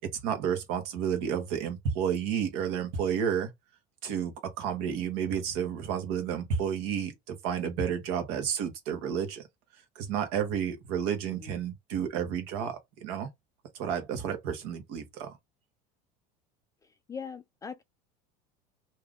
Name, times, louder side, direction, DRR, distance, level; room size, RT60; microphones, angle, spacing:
voice 1, 0.0-3.5 4.0-9.4 9.9-13.3 13.7-15.3, right 8 dB, 65° right, 1.2 m, -31 dB
voice 2, 16.8-17.8, left 6 dB, 15° left, 0.3 m, -42 dB
2.8 x 2.5 x 3.6 m
supercardioid pair, 130°, 19 cm